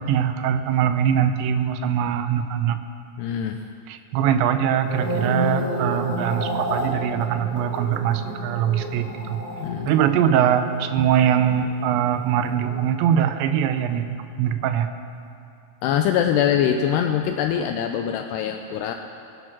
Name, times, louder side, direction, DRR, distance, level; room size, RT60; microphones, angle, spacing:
voice 1, 0.0-2.8 3.9-9.4 9.9-14.9 17.6-17.7, right 9 dB, 85° right, 9 dB, 2.9 m, -22 dB
voice 2, 3.2-3.7 9.6-9.9 15.8-18.9, left 9 dB, 80° left, 5 dB, 2.4 m, -23 dB
sound 1, 4.7-13.1 13.4-13.8, equal, 25° right, 3.5 m, -31 dB
22.0 x 8.6 x 6.1 m, 2.5 s
omnidirectional pair, 5.3 m